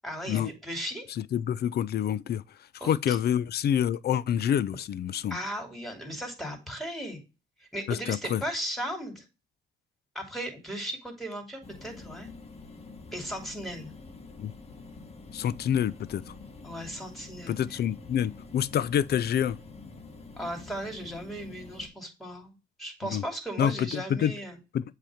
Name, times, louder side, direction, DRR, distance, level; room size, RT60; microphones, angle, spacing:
voice 1, 0.0-1.1 2.8-3.2 5.3-7.2 7.6-9.2 10.1-12.3 13.1-13.9 16.6-17.6 20.4-24.6, right 1 dB, ahead, 2.8 m, -36 dB
voice 2, 1.1-2.4 2.8-5.4 7.9-8.4 14.4-14.5 15.3-16.3 17.5-19.6 23.1-23.2 23.6-24.3 24.7-24.8, left 9 dB, 55° left, 0.5 m, -27 dB
sound 1, 11.6-21.9, left 3 dB, 30° left, 1.2 m, -47 dB
7.7 x 2.9 x 4.9 m
cardioid pair, 90°, 20 cm